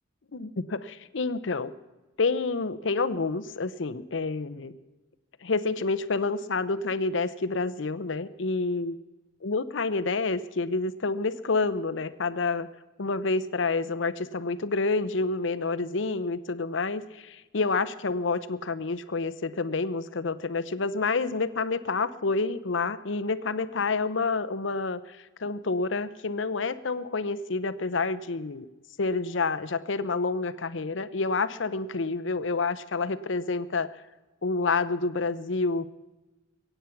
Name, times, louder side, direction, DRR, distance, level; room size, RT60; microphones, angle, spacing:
voice 1, 0.3-1.7 2.2-4.7 5.4-9.0 9.4-12.7 13.0-28.7 29.0-33.9 34.4-36.0, left 3 dB, 70° left, 14 dB, 0.7 m, -28 dB
23.0 x 9.1 x 5.9 m, 1.1 s
head